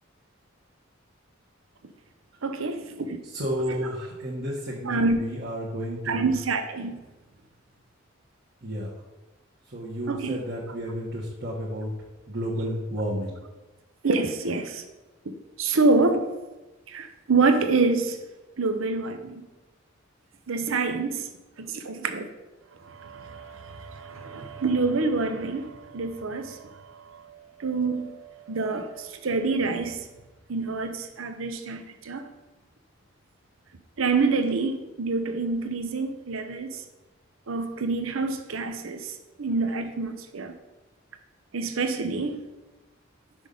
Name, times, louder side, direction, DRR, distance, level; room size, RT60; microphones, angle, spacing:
voice 1, 2.4-3.2 4.9-5.2 6.1-6.9 10.1-10.4 14.0-14.8 15.6-16.2 16.9-18.2 18.6-19.4 20.5-21.2 21.6-22.3 23.0-26.6 27.6-28.1 28.5-30.0 30.5-32.3 34.0-36.8 37.5-39.0 39.4-40.5 41.5-42.4, right 3 dB, 80° right, 8 dB, 0.7 m, -26 dB
voice 2, 3.2-6.3 8.6-8.9 9.7-11.9 12.3-13.4, equal, 50° right, -6 dB, 1.3 m, -31 dB
6.0 x 4.9 x 5.4 m, 1.1 s
head